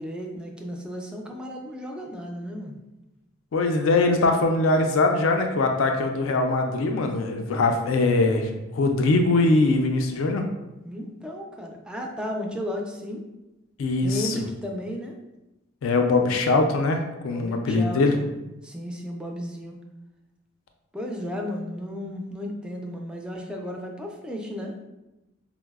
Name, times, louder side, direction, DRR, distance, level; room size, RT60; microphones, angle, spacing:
voice 1, 0.0-2.8 10.8-13.3 14.0-15.2 17.2-18.3 18.6-19.8 20.9-24.8, left 1 dB, 5° right, 0 dB, 0.3 m, -34 dB
voice 2, 3.5-10.4 13.8-14.3 15.8-18.2, left 3 dB, 75° left, 4 dB, 0.4 m, -22 dB
4.5 x 2.0 x 2.3 m, 0.98 s
head